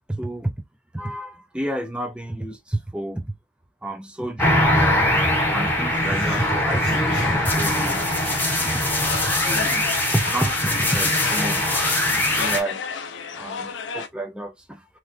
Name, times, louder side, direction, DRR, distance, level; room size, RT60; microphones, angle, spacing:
voice 1, 0.1-0.5 0.9-3.4 3.8-5.2 5.5-8.1 8.7-8.8 9.3-11.7 12.1-12.8 13.4-14.8, right 1 dB, 5° right, 0.5 m, -30 dB
sound 1, 4.4-12.6, left 1 dB, 10° left, 0.9 m, -22 dB
sound 2, 5.1-14.1, left 5 dB, 80° left, 0.5 m, -34 dB
sound 3, 5.9-9.7, right 2 dB, 30° right, 1.4 m, -41 dB
3.0 x 2.9 x 2.6 m
head